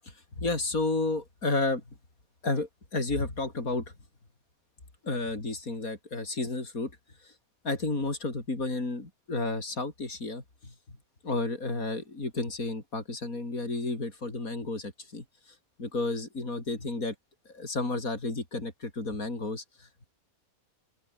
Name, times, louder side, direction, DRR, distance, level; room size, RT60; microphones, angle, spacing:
voice 1, 0.0-1.8 2.4-3.9 5.0-6.9 7.2-7.3 7.6-10.7 11.2-17.2 17.5-20.1, left 2 dB, 75° left, 5.3 m, -32 dB
open air
omnidirectional pair, 1.5 m